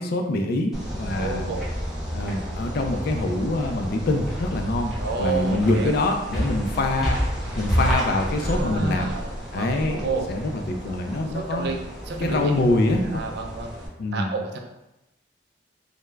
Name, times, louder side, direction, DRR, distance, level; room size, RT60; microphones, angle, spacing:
voice 1, 0.0-1.5 2.1-4.9 5.2-7.2 7.6-9.1 9.5-11.7 12.2-13.2 14.0-14.3, left 2 dB, 55° left, 4 dB, 0.3 m, -25 dB
sound 1, 0.7-13.9, equal, ahead, 0.6 m, -30 dB
voice 2, 1.2-1.7 5.0-5.9 8.4-10.3 11.3-11.8 12.1-12.5 13.0-13.7 14.1-14.6, right 4 dB, 60° right, 2 dB, 0.4 m, -30 dB
2.2 x 2.0 x 3.2 m, 0.95 s
head